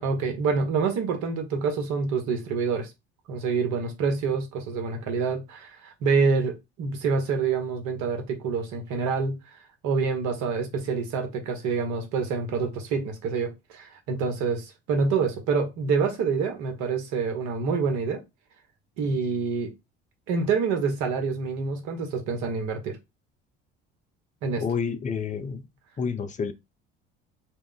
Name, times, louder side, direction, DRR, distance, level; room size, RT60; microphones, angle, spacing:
voice 1, 0.0-2.9 3.3-9.4 9.8-18.2 19.0-19.7 20.3-23.0 24.4-24.6, right 5 dB, 65° right, 1.0 m, -27 dB
voice 2, 24.6-25.6 26.0-26.5, left 6 dB, 25° left, 0.5 m, -29 dB
2.2 x 2.0 x 3.8 m
hypercardioid pair, 65°, 31 cm